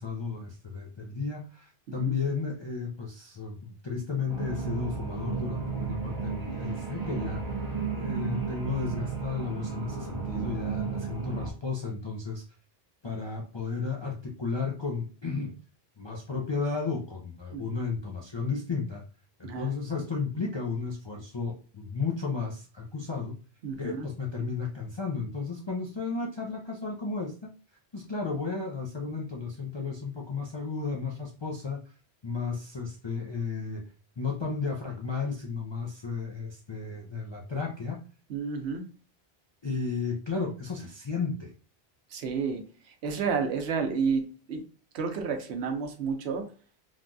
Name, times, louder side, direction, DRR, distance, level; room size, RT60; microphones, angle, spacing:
voice 1, 0.0-7.4 7.9-12.4 13.0-15.5 16.0-19.0 19.4-23.4 23.8-27.5 27.9-31.9 32.2-33.9 34.2-38.0 39.6-41.5, left 4 dB, 45° left, -2 dB, 0.3 m, -33 dB
sound 1, 4.3-11.5, right 6 dB, 40° right, 0.9 m, -33 dB
voice 2, 23.6-24.1 38.3-38.8 42.1-44.6 44.9-46.5, right 5 dB, 80° right, 6 dB, 0.9 m, -31 dB
3.3 x 2.2 x 2.5 m, 0.37 s
omnidirectional pair, 1.1 m